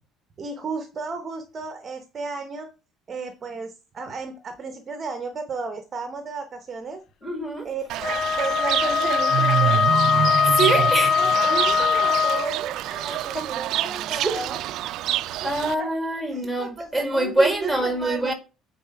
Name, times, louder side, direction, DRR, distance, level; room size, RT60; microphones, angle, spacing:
voice 1, 0.4-2.7 3.1-7.0 7.6-9.8 10.5-14.6 15.4-15.9 16.3-18.3, right 4 dB, 25° right, 0.8 m, -33 dB
voice 2, 7.2-7.7 10.5-11.1 13.3-13.4 14.2-14.4 15.4-18.3, right 2 dB, ahead, 1.7 m, -24 dB
Fowl / Bird, 7.9-15.7, right 13 dB, 55° right, 0.4 m, -27 dB
Wind instrument woodwind instrument, 8.0-12.5, left 7 dB, 45° left, 0.4 m, -21 dB
9.1 x 4.1 x 5.7 m
cardioid pair, 165°, 0 cm